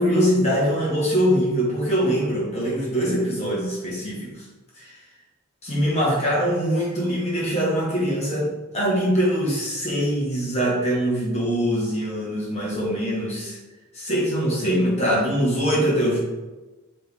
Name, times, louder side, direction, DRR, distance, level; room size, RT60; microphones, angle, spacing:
voice 1, 0.0-4.4 4.8-5.0 5.6-13.6 13.9-16.2, equal, 35° left, -5 dB, 1.4 m, -23 dB
4.2 x 3.4 x 3.5 m, 1.1 s
head